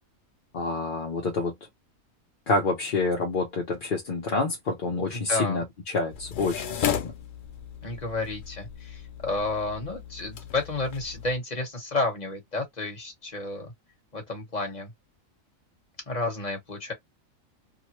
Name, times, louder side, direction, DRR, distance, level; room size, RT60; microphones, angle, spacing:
voice 1, 0.5-1.5 2.5-7.1, left 3 dB, 45° left, 0.8 m, -28 dB
voice 2, 5.1-5.6 7.8-13.7 14.1-14.9 16.1-16.9, left 3 dB, 30° left, 1.2 m, -31 dB
sound 1, 6.1-11.4, left 9 dB, 75° left, 0.4 m, -35 dB
2.9 x 2.1 x 3.0 m
omnidirectional pair, 1.5 m